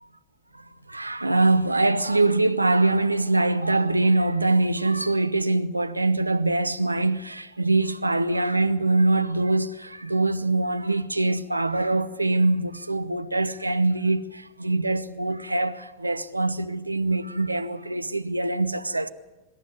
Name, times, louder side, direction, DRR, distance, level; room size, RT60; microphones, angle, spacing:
voice 1, 0.5-19.1, right 2 dB, 85° right, 0.8 m, -23 dB
24.5 x 12.5 x 9.6 m
figure-of-eight pair, 90°, 0 cm